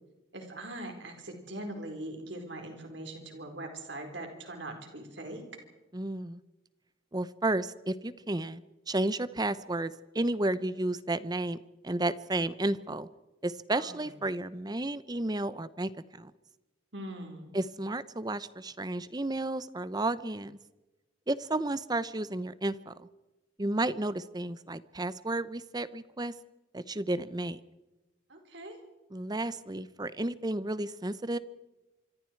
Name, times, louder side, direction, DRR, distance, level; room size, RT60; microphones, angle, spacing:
voice 1, 0.3-5.4 13.7-13.9 16.9-17.6 28.3-28.8, right 1 dB, 65° right, 4 dB, 4.5 m, -41 dB
voice 2, 5.9-6.4 7.1-11.6 11.8-13.1 13.4-16.3 17.5-20.6 21.3-23.1 23.6-26.3 26.7-27.6 29.1-31.4, right 2 dB, 20° right, 16 dB, 0.8 m, -32 dB
26.0 x 25.0 x 4.6 m, 1.0 s
head